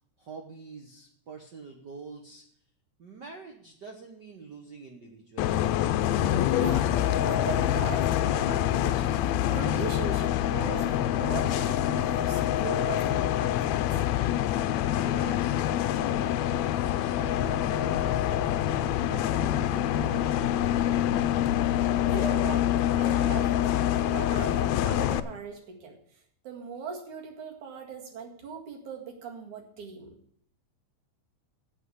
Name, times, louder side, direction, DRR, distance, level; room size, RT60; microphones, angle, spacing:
voice 1, 0.2-2.4 3.0-5.8 14.9-15.6 16.0-18.6 19.0-21.4, right 4 dB, 55° right, 2 dB, 1.2 m, -46 dB
Bus, 5.4-25.2, left 12 dB, 80° left, 1.6 m, -26 dB
voice 2, 6.6-13.8 22.0-22.7 23.0-26.0 26.4-30.2, right 5 dB, 75° right, 1 dB, 3.4 m, -39 dB
sound 1, 17.4-22.4, left 2 dB, 35° right, 2.6 m, -41 dB
8.2 x 8.0 x 8.1 m, 0.63 s
omnidirectional pair, 3.6 m